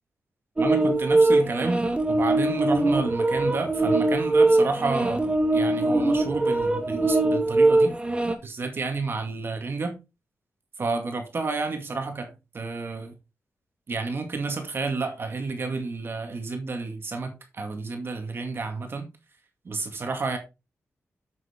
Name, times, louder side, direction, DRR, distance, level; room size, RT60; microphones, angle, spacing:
sound 1, 0.6-8.3, right 2 dB, 20° right, 1.6 m, -22 dB
voice 1, 0.6-7.9 8.4-9.9 10.8-13.1 13.9-19.1 19.7-20.4, right 3 dB, 50° right, 2.1 m, -30 dB
7.9 x 7.5 x 3.7 m
cardioid pair, 95°, 5 cm